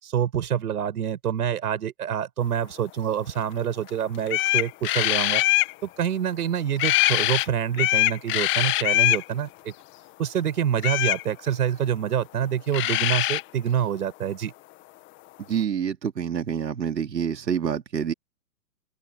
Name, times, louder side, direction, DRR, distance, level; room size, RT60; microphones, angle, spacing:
voice 1, 0.0-5.4 5.8-9.7 10.2-14.5, right 9 dB, 65° right, 7.5 m, -26 dB
sound 1, 3.9-4.0 4.3-5.7 6.8-7.5 7.7-9.2 10.8-11.2 12.4-12.5 12.7-13.4, left 18 dB, 25° left, 1.9 m, -22 dB
voice 2, 15.5-18.1, right 8 dB, 80° right, 3.1 m, -27 dB
hypercardioid pair, 135°, 50 cm